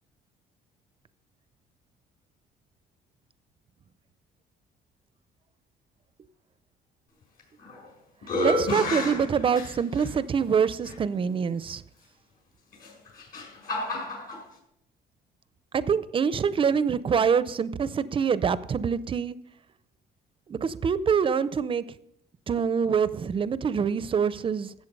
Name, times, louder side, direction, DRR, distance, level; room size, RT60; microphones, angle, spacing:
sound 1, 7.4-7.9 8.2-10.1 10.9-11.0 12.7-14.4, left 1 dB, 60° left, 5.4 m, -30 dB
voice 1, 8.4-11.8 15.7-19.4 20.5-21.8 22.5-24.7, right 6 dB, 30° right, 0.6 m, -25 dB
13.5 x 7.9 x 5.3 m
cardioid pair, 120°, 17 cm